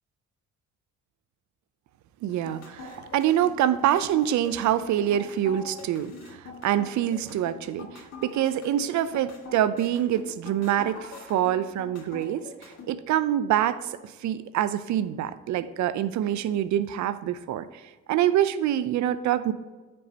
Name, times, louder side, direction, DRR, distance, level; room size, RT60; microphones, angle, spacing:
voice 1, 2.2-13.9 14.2-17.8 18.1-19.5, right 11 dB, 70° right, 14 dB, 0.5 m, -26 dB
sound 1, 2.3-12.9, left 4 dB, 55° left, 1.8 m, -43 dB
9.5 x 5.3 x 2.8 m, 1.3 s
cardioid pair, 90°, 30 cm